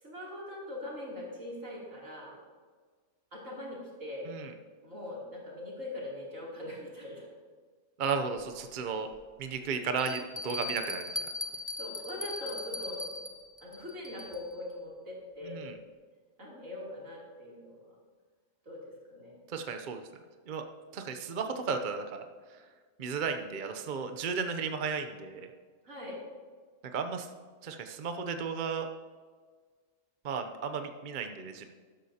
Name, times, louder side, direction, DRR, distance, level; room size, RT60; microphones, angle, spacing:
voice 1, 0.0-2.4 3.3-4.3 4.8-7.3 9.6-9.7 11.8-13.0 13.6-15.6 16.4-17.9 18.6-19.4 25.8-26.2, left 1 dB, 70° right, -5 dB, 3.4 m, -42 dB
voice 2, 8.0-9.1 9.4-11.1 15.4-15.7 19.5-20.0 20.5-20.6 20.9-22.2 22.5-22.6 23.0-25.5 26.9-27.3 27.6-28.9 30.2-31.7, right 5 dB, 45° right, 6 dB, 0.7 m, -34 dB
Bell, 8.4-8.5 9.1-9.2 10.0-14.5, left 2 dB, 15° left, 0.4 m, -39 dB
13.0 x 11.5 x 2.8 m, 1.5 s
omnidirectional pair, 1.4 m